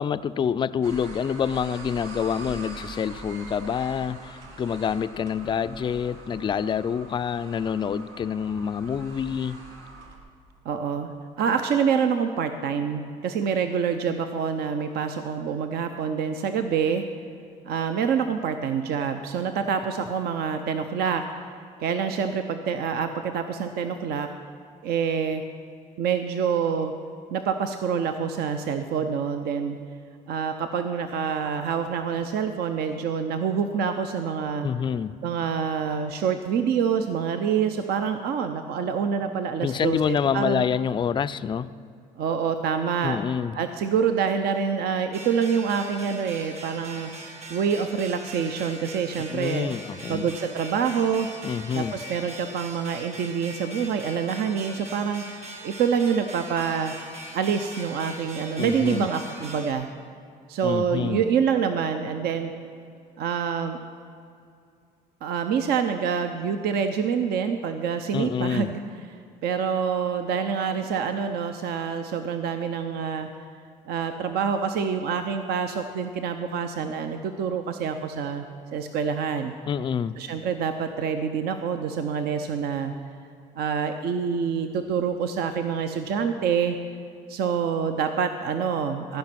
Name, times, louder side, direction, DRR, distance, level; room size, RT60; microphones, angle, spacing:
voice 1, 0.0-9.6 34.6-35.2 39.6-41.7 43.0-43.6 49.3-50.3 51.4-52.0 58.6-59.1 60.6-61.2 68.1-68.7 79.7-80.2, left 7 dB, 25° left, 13 dB, 0.3 m, -27 dB
sound 1, 0.8-10.2, right 3 dB, 85° right, 1.5 m, -43 dB
voice 2, 10.6-11.1 11.4-17.0 17.6-21.5 21.8-24.3 24.8-25.4 26.0-26.9 27.3-29.8 30.3-34.7 35.2-40.7 42.2-43.2 43.5-47.1 47.5-49.7 50.1-51.3 51.7-55.2 55.6-56.9 57.3-59.9 60.5-62.5 63.2-63.8 65.2-68.8 69.4-73.3 73.9-78.5 78.7-79.5 80.2-82.9 83.6-86.8 87.3-89.2, right 6 dB, 60° right, 8 dB, 0.6 m, -26 dB
sound 2, 45.1-59.7, right 1 dB, 35° right, 1.9 m, -41 dB
15.0 x 5.3 x 5.9 m, 2.4 s
supercardioid pair, 85°, 18 cm